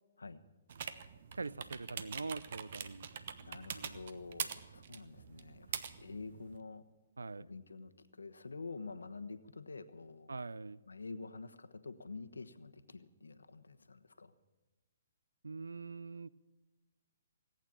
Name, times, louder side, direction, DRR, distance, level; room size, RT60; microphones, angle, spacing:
sound 1, 0.7-6.6, right 7 dB, 55° right, 1.1 m, -45 dB
voice 1, 1.3-3.2 3.6-4.0 7.2-7.5 10.3-10.8 15.4-16.3, right 3 dB, 85° right, 18 dB, 0.5 m, -43 dB
voice 2, 3.4-6.8 7.3-10.4 10.9-14.3, left 4 dB, 85° left, 11 dB, 1.1 m, -48 dB
18.0 x 9.0 x 8.7 m, 1.2 s
hypercardioid pair, 135°, 0 cm